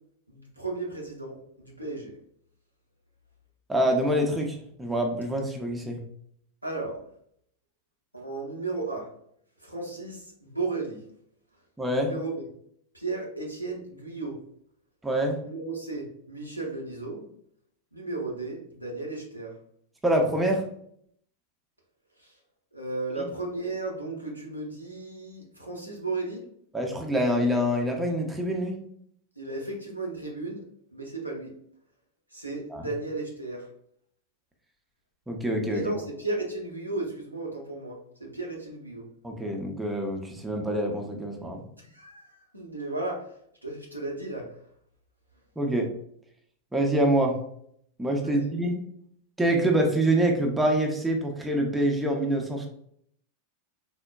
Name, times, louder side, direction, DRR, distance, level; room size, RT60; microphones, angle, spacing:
voice 1, 0.3-2.2 6.6-7.0 8.1-9.1 9.6-11.0 11.9-12.4 12.9-14.4 15.4-17.3 17.9-19.6 22.2-22.3 22.7-26.5 29.4-30.6 30.9-31.6 32.3-33.7 35.7-39.1 41.8-43.3 43.6-44.6 48.2-48.5, right 3 dB, 90° right, -2 dB, 0.7 m, -34 dB
voice 2, 3.7-6.0 11.8-12.1 15.0-15.4 20.0-20.6 26.7-28.8 32.7-32.9 35.3-35.9 39.2-41.6 45.6-45.9 46.7-47.4 48.0-48.8 49.4-52.7, right 1 dB, 10° right, 1 dB, 0.5 m, -25 dB
3.5 x 2.1 x 2.2 m, 0.68 s
figure-of-eight pair, 90°, 0 cm